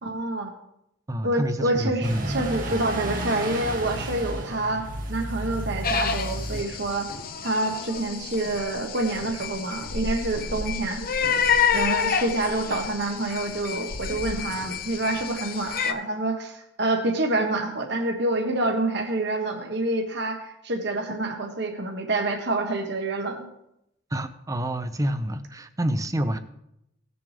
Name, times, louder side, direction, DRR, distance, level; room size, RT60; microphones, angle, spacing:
voice 1, 0.0-0.5 1.2-7.1 7.4-11.0 11.7-23.5, right 2 dB, 60° right, 3 dB, 1.3 m, -27 dB
voice 2, 1.1-2.9 24.1-26.4, equal, 15° right, 10 dB, 0.6 m, -28 dB
sound 1, 2.0-7.1, right 1 dB, 45° right, 1.5 m, -32 dB
sound 2, 5.8-15.9, left 6 dB, 50° left, 0.7 m, -29 dB
17.5 x 6.9 x 3.4 m, 0.80 s
head